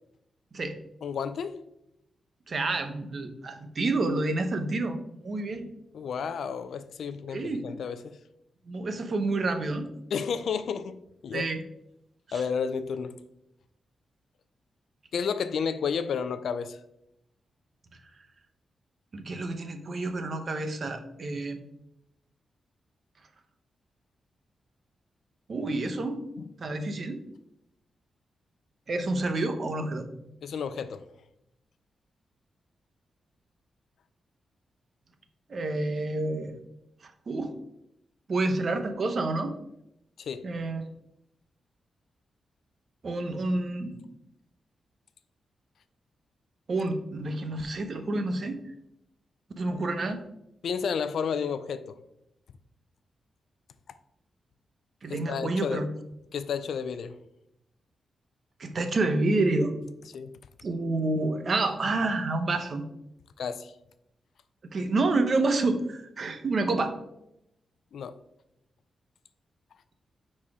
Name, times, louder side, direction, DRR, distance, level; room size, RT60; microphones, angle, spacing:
voice 1, 1.0-1.6 5.9-8.2 10.1-11.0 11.2-11.5 12.3-13.2 15.1-16.8 26.4-26.5 30.4-31.0 40.2-40.5 50.6-52.0 55.1-55.8 56.3-57.2 60.1-60.3 63.4-63.7 67.9-68.2, left 6 dB, 75° left, 0.5 m, -31 dB
voice 2, 2.5-5.0 5.2-5.7 7.3-7.6 8.7-9.9 11.3-11.6 12.3-12.4 19.1-21.6 25.5-26.2 26.6-27.2 28.9-30.1 35.5-36.5 37.0-37.5 38.3-39.5 40.4-40.8 43.0-44.1 46.7-48.6 49.6-50.2 55.0-55.9 58.6-59.7 60.6-62.8 64.7-66.9, right 2 dB, 45° right, 0.8 m, -28 dB
9.6 x 4.3 x 3.6 m
wide cardioid pair, 135°, 0 cm